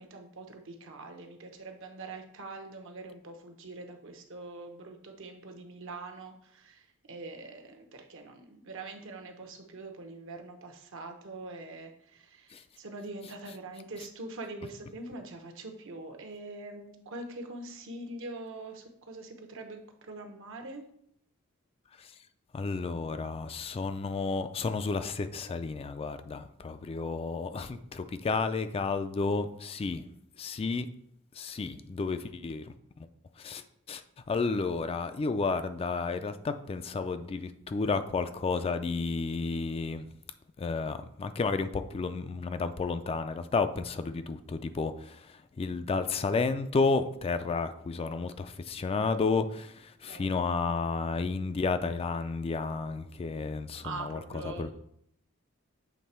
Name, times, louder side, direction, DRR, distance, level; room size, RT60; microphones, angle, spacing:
voice 1, 0.0-20.8 34.5-34.6 50.1-50.3 53.8-54.7, right 2 dB, 65° right, 5 dB, 0.9 m, -43 dB
voice 2, 22.5-30.0 30.4-30.9 31.3-32.7 33.4-33.6 33.9-34.0 34.3-40.1 40.6-54.7, left 4 dB, 30° left, 10 dB, 0.3 m, -32 dB
7.3 x 3.3 x 4.3 m, 0.70 s
head